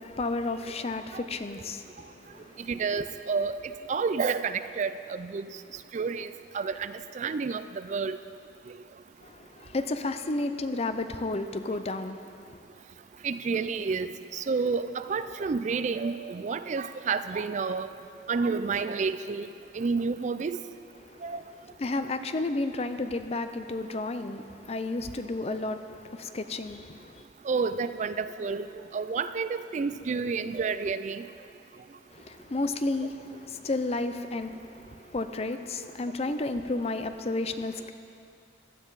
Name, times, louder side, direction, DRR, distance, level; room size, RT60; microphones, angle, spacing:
voice 1, 0.0-2.8 9.2-12.6 21.0-21.3 21.8-27.2 32.1-37.9, left 2 dB, 35° left, 9 dB, 0.5 m, -32 dB
voice 2, 2.7-3.5 3.9-5.5 5.9-8.2 13.2-17.9 18.3-19.5 19.7-20.6 21.2-21.4 27.5-31.2, right 5 dB, 45° right, 12 dB, 0.4 m, -30 dB
16.5 x 12.0 x 4.0 m, 2.5 s
head